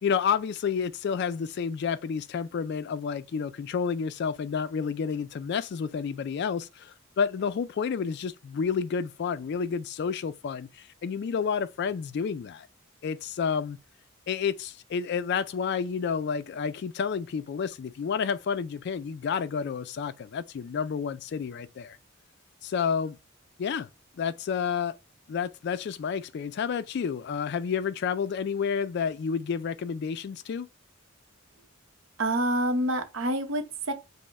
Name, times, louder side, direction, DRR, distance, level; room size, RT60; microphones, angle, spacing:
voice 1, 0.0-12.7 13.0-13.8 14.3-22.0 22.6-23.2 23.6-23.9 24.2-24.9 25.3-30.7, left 6 dB, 50° left, 0.3 m, -30 dB
voice 2, 32.2-33.9, right 1 dB, 65° right, 0.8 m, -27 dB
5.2 x 2.1 x 3.4 m
head